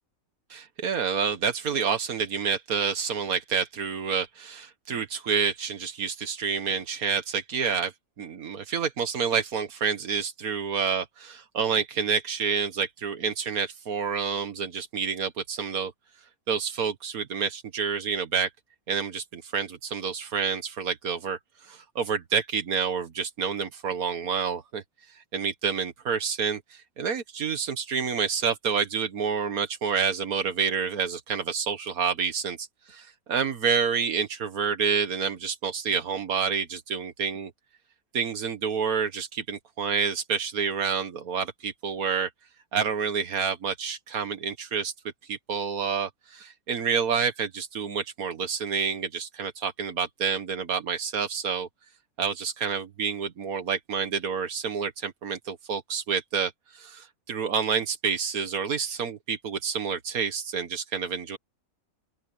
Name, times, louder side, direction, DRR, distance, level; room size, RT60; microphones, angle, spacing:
voice 1, 0.5-7.9 8.2-15.9 16.5-18.5 18.9-21.4 21.7-24.8 25.3-37.5 38.1-42.3 42.7-44.9 45.3-51.7 52.2-61.4, right 6 dB, 90° right, 1.8 m, -28 dB
open air
omnidirectional pair, 1.5 m